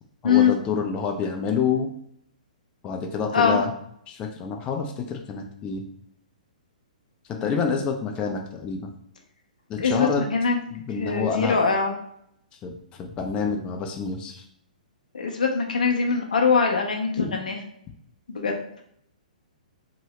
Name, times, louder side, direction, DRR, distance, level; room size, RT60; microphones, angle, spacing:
voice 1, 0.2-1.9 2.8-3.7 4.1-5.8 7.3-8.9 9.7-10.2 10.7-11.6 12.6-14.4, left 5 dB, 25° left, 3 dB, 0.4 m, -28 dB
voice 2, 9.8-10.6 11.0-11.9 15.1-17.6 18.3-18.6, left 5 dB, 75° left, 2 dB, 0.5 m, -22 dB
2.9 x 2.6 x 3.1 m, 0.70 s
figure-of-eight pair, 120°, 4 cm